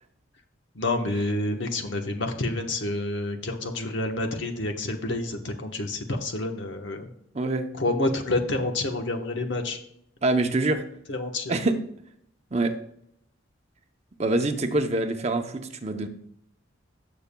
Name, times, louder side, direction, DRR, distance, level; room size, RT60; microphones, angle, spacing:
voice 1, 0.7-7.1 7.8-9.8 11.1-11.6, left 2 dB, 60° left, 4 dB, 1.1 m, -28 dB
voice 2, 7.3-7.7 10.2-10.8 11.5-11.8 12.5-12.7 14.2-16.1, right 2 dB, 30° right, 6 dB, 0.7 m, -25 dB
17.0 x 7.0 x 2.3 m, 0.72 s
head